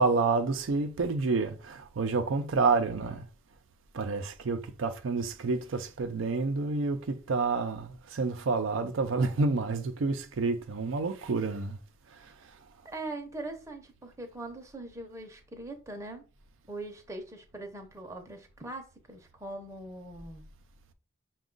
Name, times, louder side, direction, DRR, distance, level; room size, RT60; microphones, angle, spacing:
voice 1, 0.0-3.2 3.9-11.8, right 4 dB, 80° right, 0.5 m, -29 dB
voice 2, 12.8-16.2 16.7-20.4, right 2 dB, 15° right, 0.6 m, -41 dB
5.9 x 2.3 x 3.8 m
head